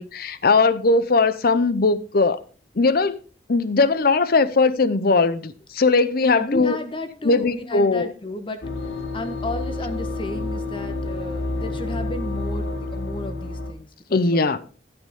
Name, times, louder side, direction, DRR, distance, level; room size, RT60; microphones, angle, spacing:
voice 1, 0.0-2.4 2.8-3.2 3.5-6.8 7.2-8.1 14.1-14.6, left 3 dB, 55° left, 0.6 m, -19 dB
voice 2, 6.4-14.6, left 1 dB, 30° left, 1.2 m, -33 dB
sound 1, 8.6-13.7, left 2 dB, 85° left, 1.5 m, -29 dB
12.5 x 7.9 x 3.6 m
head